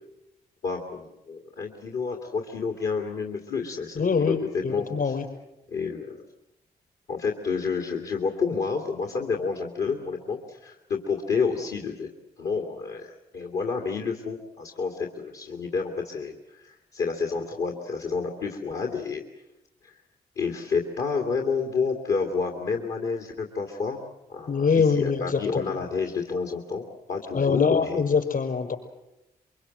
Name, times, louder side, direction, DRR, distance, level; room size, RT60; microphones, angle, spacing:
voice 1, 0.6-4.4 4.7-5.1 5.7-6.2 7.1-12.1 12.4-19.2 19.8-19.9 20.4-24.0 24.3-28.0, left 5 dB, 75° left, 2 dB, 2.4 m, -29 dB
voice 2, 3.9-4.4 4.6-5.2 24.5-25.6 27.3-28.8, left 5 dB, 55° left, 4 dB, 6.0 m, -23 dB
23.5 x 23.0 x 7.9 m, 0.90 s
supercardioid pair, 45°, 17 cm